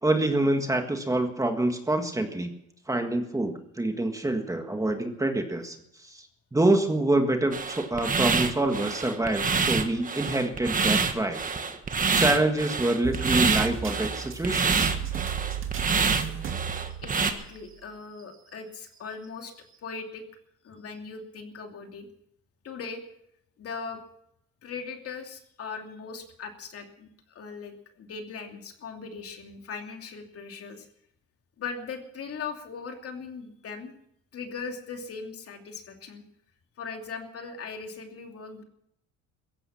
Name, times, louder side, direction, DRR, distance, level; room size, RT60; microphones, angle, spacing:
voice 1, 0.0-2.5 2.9-5.8 6.0-6.3 6.5-11.4 12.2-14.9, right 2 dB, 10° right, 5 dB, 1.7 m, -26 dB
sound 1, 7.5-17.3, right 5 dB, 25° right, 1.6 m, -27 dB
sound 2, 13.0-17.7 18.2-18.3 19.2-19.3, right 8 dB, 40° right, 2.5 m, -34 dB
voice 2, 17.0-19.5 19.8-20.2 20.6-22.1 22.6-23.0 23.6-24.0 24.6-30.9 31.6-34.0 34.3-36.2 36.8-38.6, left 5 dB, 50° left, 4 dB, 2.7 m, -39 dB
16.5 x 15.0 x 5.8 m, 0.74 s
cardioid pair, 120°, 31 cm